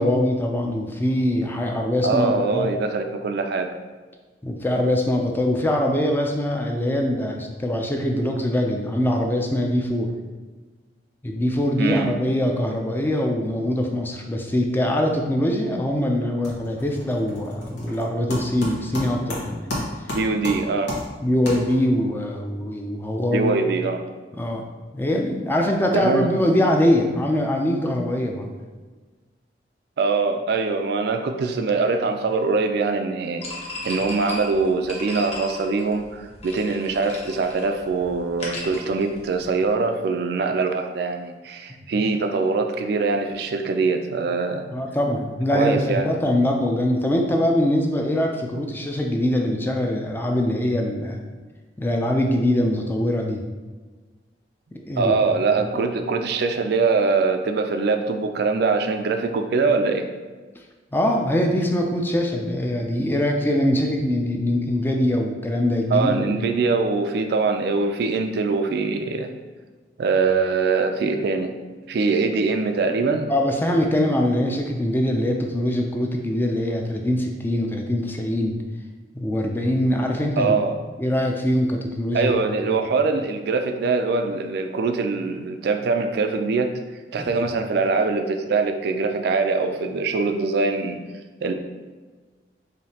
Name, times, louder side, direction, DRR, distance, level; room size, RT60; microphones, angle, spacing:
voice 1, 0.0-2.7 4.4-10.1 11.2-19.7 21.2-23.6 24.3-24.6 24.9-28.5 41.7-42.0 44.7-51.2 51.8-53.4 54.9-55.1 55.6-55.7 60.9-66.5 73.3-78.6 79.1-80.6 81.0-82.3 82.6-82.8 87.2-87.5, left 1 dB, 10° left, 1 dB, 0.4 m, -23 dB
voice 2, 2.0-3.7 11.8-12.1 20.1-20.9 23.3-24.0 25.9-26.3 30.0-33.4 33.8-44.7 45.5-46.1 55.0-60.0 65.9-69.3 70.0-71.5 71.9-73.3 80.4-80.8 82.1-86.7 87.1-91.0 91.4-91.5, right 4 dB, 65° right, 6 dB, 0.3 m, -23 dB
sound 1, 15.6-15.9 16.2-22.1, left 1 dB, 85° left, 1.2 m, -33 dB
sound 2, 33.4-39.7, left 1 dB, 35° left, 0.9 m, -36 dB
5.0 x 2.7 x 2.8 m, 1.4 s
head